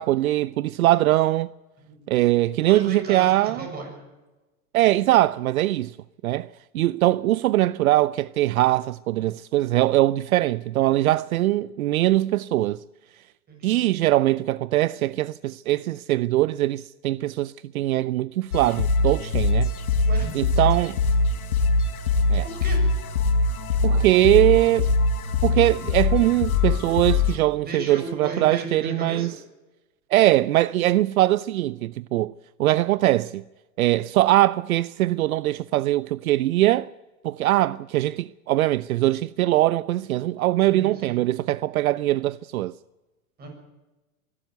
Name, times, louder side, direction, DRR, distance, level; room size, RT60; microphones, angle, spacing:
voice 1, 0.0-1.5 2.1-3.6 4.7-6.0 6.2-6.5 6.7-12.8 13.6-19.7 20.3-21.0 22.3-22.4 23.8-24.9 25.4-29.3 30.1-32.3 32.6-33.4 33.8-36.9 37.2-42.7, right 15 dB, 70° right, 0.6 m, -21 dB
voice 2, 2.6-4.1 13.5-13.8 20.1-20.3 22.4-22.8 27.7-29.3 40.7-41.2 43.4-43.5, right 2 dB, 20° right, 7.1 m, -35 dB
sound 1, 18.5-27.3, left 3 dB, 75° left, 3.8 m, -22 dB
23.0 x 12.5 x 9.4 m
hypercardioid pair, 145°, 44 cm